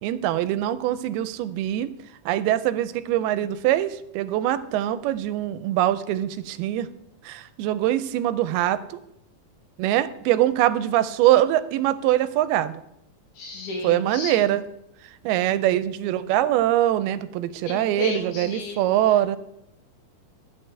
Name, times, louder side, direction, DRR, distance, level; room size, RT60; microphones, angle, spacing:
voice 1, 0.0-1.9 2.3-6.9 7.3-9.0 9.8-12.7 13.8-14.6 15.2-19.4, right 13 dB, 85° right, 13 dB, 2.5 m, -23 dB
voice 2, 13.4-14.4 17.7-18.8, left 2 dB, 85° left, 0 dB, 4.0 m, -33 dB
12.5 x 9.0 x 3.3 m, 0.79 s
omnidirectional pair, 4.4 m